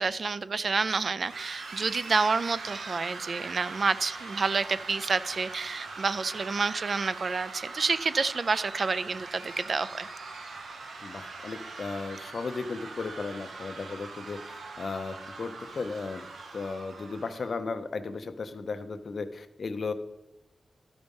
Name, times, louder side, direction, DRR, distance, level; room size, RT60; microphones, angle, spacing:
voice 1, 0.0-10.1, right 4 dB, 45° right, 16 dB, 0.3 m, -29 dB
sound 1, 1.2-17.5, right 3 dB, 80° right, 1.0 m, -42 dB
voice 2, 11.0-16.3 16.5-19.9, left 4 dB, 50° left, 9 dB, 0.6 m, -35 dB
13.0 x 5.2 x 5.3 m, 0.94 s
wide cardioid pair, 165°, 0 cm